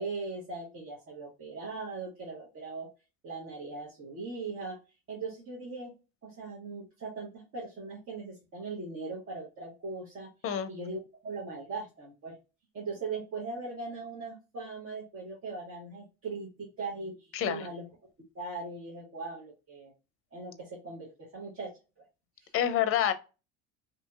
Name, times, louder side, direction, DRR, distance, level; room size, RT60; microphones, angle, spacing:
voice 1, 0.0-2.9 3.2-4.8 5.1-5.9 6.2-10.3 10.7-12.3 12.7-17.9 18.3-19.9 20.3-21.7 22.4-22.5, right 3 dB, 40° right, 1.2 m, -39 dB
voice 2, 17.3-17.7 22.5-23.1, left 9 dB, 40° left, 0.6 m, -27 dB
2.8 x 2.6 x 2.2 m
supercardioid pair, 85°, 34 cm